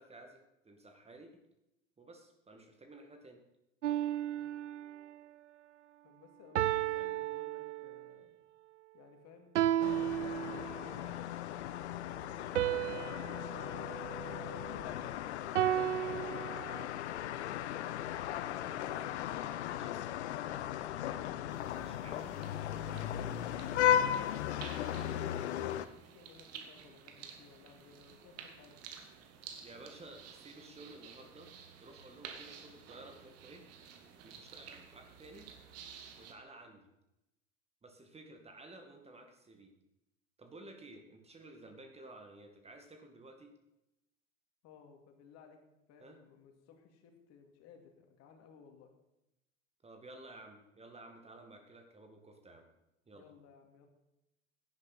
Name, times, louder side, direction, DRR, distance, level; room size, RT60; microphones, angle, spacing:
voice 1, 0.0-1.4 2.0-3.4 6.9-7.2 19.6-20.1 21.8-22.3 22.8-23.0 24.4-24.6 29.6-31.5 31.8-33.6 34.2-35.5 36.2-36.9 37.8-39.7 40.4-43.5 46.0-46.2 49.8-52.7 53.1-53.3, right 2 dB, 15° right, 4 dB, 2.0 m, -54 dB
sound 1, 3.8-5.1 6.6-8.2 9.6-11.0 12.6-15.0 15.6-16.9, right 12 dB, 75° right, 0.5 m, -34 dB
voice 2, 6.0-8.3 8.9-9.5 23.8-28.8 44.6-45.6 45.9-48.9 53.1-53.9, left 6 dB, 45° left, 4 dB, 2.6 m, -60 dB
sound 2, 9.8-25.9, left 10 dB, 65° left, 0.8 m, -36 dB
sound 3, 21.5-36.3, right 7 dB, 40° right, 2.0 m, -52 dB
17.5 x 10.5 x 4.3 m, 0.89 s
figure-of-eight pair, 75°, 37 cm